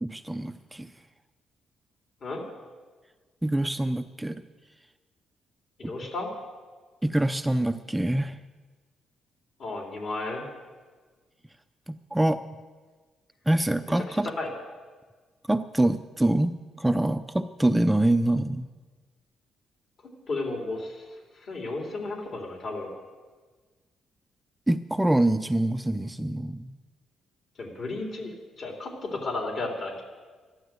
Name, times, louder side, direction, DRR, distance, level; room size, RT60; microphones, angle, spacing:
voice 1, 0.0-0.9 3.4-4.4 5.8-5.9 7.0-8.4 11.9-12.4 13.5-14.3 15.5-18.7 24.7-26.7, right 1 dB, 10° right, 9 dB, 0.5 m, -25 dB
voice 2, 5.8-6.3 9.6-10.5 14.1-14.5 20.3-21.1 21.3-22.9 27.6-30.0, left 2 dB, 55° left, 1 dB, 3.9 m, -33 dB
12.5 x 12.0 x 7.9 m, 1.4 s
cardioid pair, 90°, 0 cm